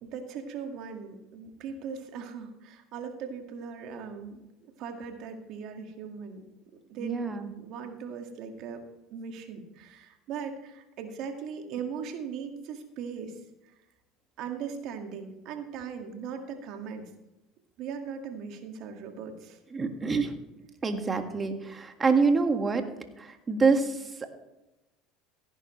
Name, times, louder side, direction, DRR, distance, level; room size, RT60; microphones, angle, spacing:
voice 1, 0.0-4.4 4.8-6.5 6.9-8.8 9.1-13.4 13.6-13.7 14.4-17.1 17.8-19.6, right 6 dB, 60° right, 4 dB, 1.9 m, -39 dB
voice 2, 7.0-7.5 19.7-20.3 20.8-22.9 23.2-24.3, right 4 dB, 25° right, 6 dB, 1.8 m, -26 dB
16.5 x 9.9 x 3.2 m, 0.95 s
hypercardioid pair, 80°, 0 cm